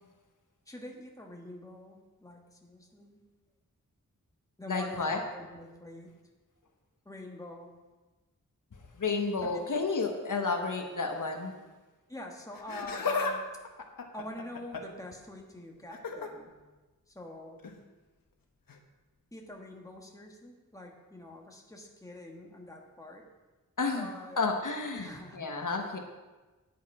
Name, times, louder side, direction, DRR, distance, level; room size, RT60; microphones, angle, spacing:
voice 1, 0.7-3.2 4.6-6.1 7.0-7.7 9.5-9.7 12.1-13.4 14.1-16.6 17.1-17.6 19.3-23.3 23.9-24.4 24.9-25.7, left 1 dB, 10° left, 0 dB, 1.5 m, -45 dB
voice 2, 4.7-5.2 9.0-11.5 23.8-24.1 24.4-26.0, left 4 dB, 65° left, 3 dB, 1.3 m, -31 dB
Laughter, 12.5-13.4 13.6-15.0 15.9-16.3 17.6-17.8 18.7-18.8, left 4 dB, 90° left, 1.1 m, -34 dB
9.6 x 8.3 x 4.9 m, 1.2 s
wide cardioid pair, 85°, 33 cm